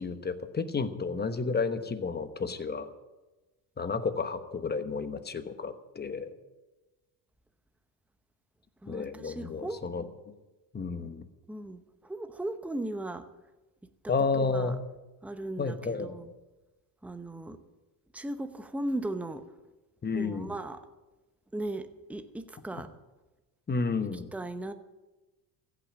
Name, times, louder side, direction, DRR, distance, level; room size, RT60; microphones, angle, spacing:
voice 1, 0.0-2.9 3.8-6.3 8.9-10.0 10.7-11.2 14.1-14.7 15.6-16.2 20.0-20.5 23.7-24.3, left 4 dB, 20° left, 10 dB, 1.2 m, -31 dB
voice 2, 8.8-9.8 11.5-13.3 14.3-14.7 15.2-16.3 17.0-17.6 18.1-19.5 20.1-20.9 21.5-22.9 24.3-24.7, right 1 dB, 5° right, 9 dB, 0.8 m, -37 dB
15.5 x 6.1 x 9.6 m, 1.1 s
supercardioid pair, 100°, 45 cm